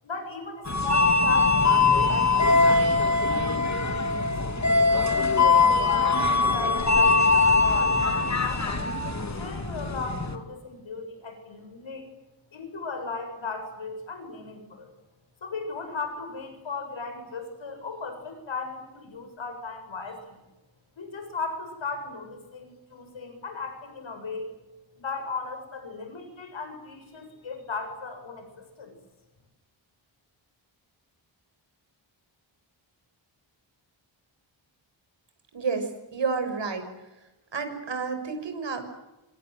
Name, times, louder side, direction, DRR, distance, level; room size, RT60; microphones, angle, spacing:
voice 1, 0.0-4.4 4.9-8.8 9.3-12.1 12.5-14.9 15.4-20.4 21.0-24.5 25.0-29.0, left 4 dB, 70° left, 6 dB, 7.6 m, -36 dB
sound 1, 0.7-10.3, left 3 dB, 35° left, 2.9 m, -22 dB
voice 2, 35.5-36.9 37.5-38.8, right 5 dB, 65° right, 8 dB, 6.4 m, -30 dB
27.5 x 26.5 x 8.0 m, 1.0 s
wide cardioid pair, 160°, 47 cm